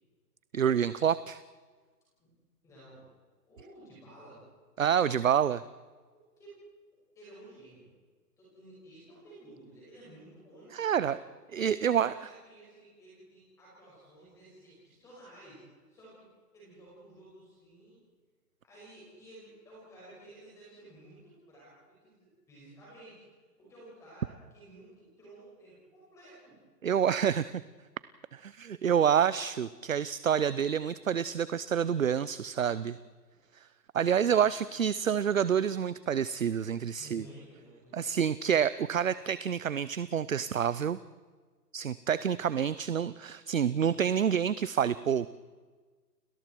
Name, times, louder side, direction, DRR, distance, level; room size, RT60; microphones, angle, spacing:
voice 1, 0.5-1.4 4.8-5.6 10.7-11.2 11.5-12.1 26.8-27.6 28.3-33.0 33.5-33.7 33.9-37.2 37.9-41.0 41.7-45.3, right 8 dB, 55° right, 16 dB, 0.7 m, -28 dB
voice 2, 2.6-3.0 3.4-4.4 6.1-6.6 7.1-7.9 8.4-11.2 11.8-15.6 15.9-16.3 16.5-18.0 18.6-23.2 23.6-26.6 34.2-34.8 37.0-38.1, right 1 dB, 5° left, -7 dB, 5.7 m, -53 dB
30.0 x 19.0 x 4.6 m, 1.4 s
hypercardioid pair, 175°, 49 cm